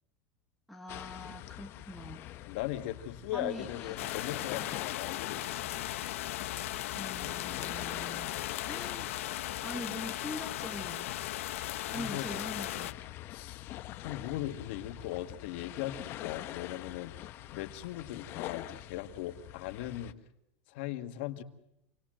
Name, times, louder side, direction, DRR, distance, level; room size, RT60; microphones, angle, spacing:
voice 1, 0.7-2.2 3.3-3.7 4.5-4.7 6.9-9.1 9.6-11.1 11.9-13.0, left 1 dB, ahead, 1 dB, 1.4 m, -43 dB
sound 1, 0.9-20.1, left 14 dB, 35° left, 0.9 m, -45 dB
voice 2, 2.4-5.8 11.9-12.3 13.3-13.7 14.0-17.1 17.5-20.2 20.7-21.4, left 13 dB, 60° left, 6 dB, 1.7 m, -39 dB
sound 2, 4.0-12.9, left 15 dB, 90° left, 0.9 m, -37 dB
28.0 x 19.5 x 7.7 m, 0.84 s
supercardioid pair, 165°, 7 cm